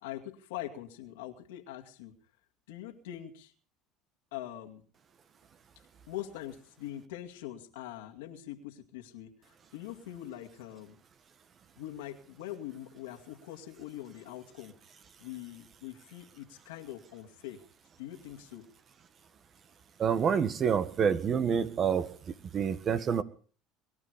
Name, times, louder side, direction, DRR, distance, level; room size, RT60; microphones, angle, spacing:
voice 1, 0.0-2.2 2.7-3.5 4.3-4.8 6.1-11.0 11.8-14.7 15.2-17.6 18.0-18.7, left 12 dB, 85° left, 4 dB, 2.3 m, -43 dB
voice 2, 20.0-23.2, right 7 dB, 40° right, 13 dB, 1.7 m, -28 dB
23.0 x 12.0 x 5.2 m, 0.41 s
supercardioid pair, 90°, 0 cm